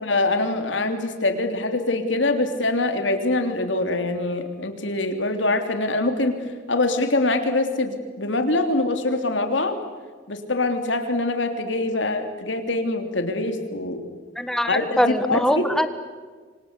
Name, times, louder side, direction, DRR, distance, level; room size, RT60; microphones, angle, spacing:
voice 1, 0.0-6.3 6.7-9.8 10.3-14.0 14.7-15.7, left 2 dB, 80° left, 6 dB, 3.2 m, -24 dB
voice 2, 14.4-15.9, equal, 5° left, 10 dB, 1.5 m, -22 dB
27.5 x 25.0 x 8.2 m, 1.5 s
head